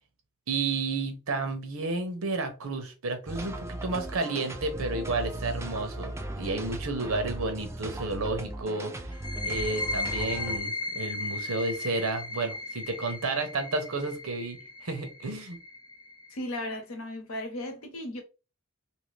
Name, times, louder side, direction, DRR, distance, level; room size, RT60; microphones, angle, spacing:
voice 1, 0.5-9.1 9.4-15.6, right 3 dB, 85° right, 0.9 m, -31 dB
sound 1, 3.3-10.6, right 1 dB, 15° right, 0.3 m, -37 dB
sound 2, 9.1-16.5, left 2 dB, 20° left, 0.7 m, -36 dB
voice 2, 16.3-18.2, left 1 dB, 75° left, 0.9 m, -36 dB
2.8 x 2.7 x 3.2 m
head